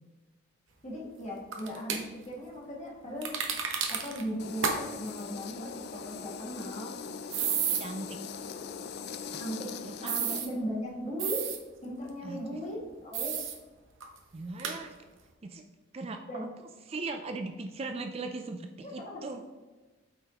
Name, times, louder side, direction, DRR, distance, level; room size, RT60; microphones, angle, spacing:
voice 1, 0.8-3.3 3.9-6.9 9.3-9.7 10.0-11.5 11.8-13.4 16.2-16.5 18.8-19.1, equal, 35° left, -4 dB, 2.0 m, -38 dB
sound 1, 1.5-2.0 3.2-4.2 4.6-4.8 5.1-5.2 7.3-7.8 10.1-10.5 11.2-11.6 13.1-13.6 14.0-14.1 14.6-14.8, right 7 dB, 65° right, 0.9 m, -31 dB
sound 2, 4.4-10.4, left 6 dB, 50° left, 0.4 m, -41 dB
voice 2, 7.5-8.2 9.8-10.1 12.2-12.4 14.3-14.9 15.4-15.6 15.9-16.5 16.9-19.4, right 3 dB, 30° right, 6 dB, 0.3 m, -39 dB
8.3 x 5.8 x 2.9 m, 1.2 s
head